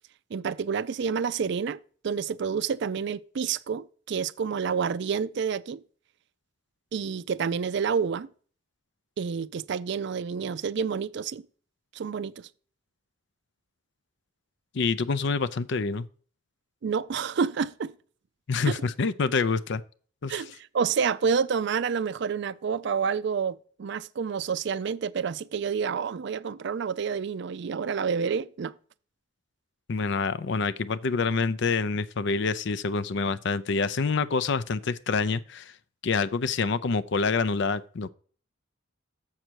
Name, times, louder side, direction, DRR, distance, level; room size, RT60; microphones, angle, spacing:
voice 1, 0.3-5.8 6.9-8.3 9.2-11.4 11.9-12.5 16.8-17.9 18.6-18.7 20.3-28.7, right 6 dB, 60° right, 0.4 m, -29 dB
voice 2, 14.7-16.1 18.5-19.8 20.2-20.4 29.9-35.7 36.0-38.1, left 4 dB, 60° left, 0.5 m, -27 dB
7.3 x 6.4 x 4.5 m
head